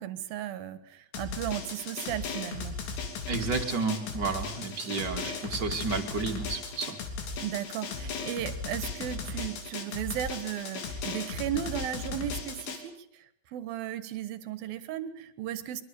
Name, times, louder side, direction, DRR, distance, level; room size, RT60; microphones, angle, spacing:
voice 1, 0.0-2.8 7.4-13.1 13.5-15.8, right 11 dB, 70° right, 12 dB, 3.0 m, -35 dB
Drum, 1.1-12.8, left 4 dB, 85° left, 5.1 m, -37 dB
voice 2, 3.3-7.0, right 4 dB, 35° right, 4 dB, 2.2 m, -31 dB
24.0 x 23.0 x 7.0 m, 0.66 s
omnidirectional pair, 4.8 m